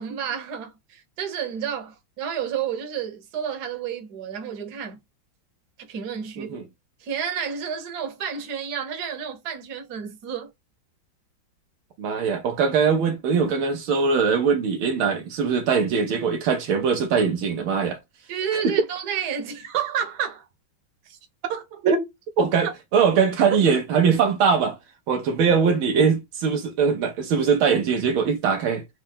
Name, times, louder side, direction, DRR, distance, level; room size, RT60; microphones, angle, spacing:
voice 1, 0.0-5.0 5.9-6.6 7.0-10.5 18.3-20.5 21.0-21.2 21.5-21.8, right 8 dB, 55° right, 1.5 m, -30 dB
voice 2, 12.0-18.0 18.6-18.7 21.8-22.1 22.4-24.8 25.1-28.8, right 6 dB, 75° right, 1.6 m, -21 dB
4.3 x 3.1 x 3.6 m
omnidirectional pair, 2.3 m